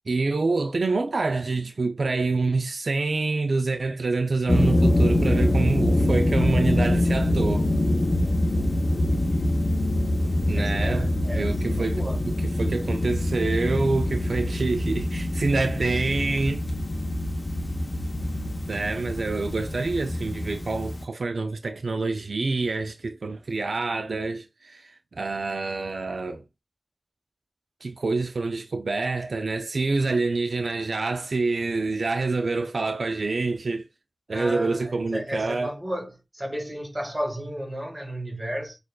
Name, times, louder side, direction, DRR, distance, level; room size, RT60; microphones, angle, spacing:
voice 1, 0.1-7.7 10.5-12.0 12.3-16.6 18.7-26.4 27.8-33.9 34.3-35.7, right 3 dB, 85° right, 0.4 m, -27 dB
sound 1, 4.5-21.0, left 1 dB, 45° left, 0.6 m, -24 dB
voice 2, 9.0-9.6 10.5-10.9 11.2-12.3 34.3-38.8, equal, 30° right, 1.6 m, -33 dB
6.5 x 2.4 x 2.3 m
wide cardioid pair, 50°, 0 cm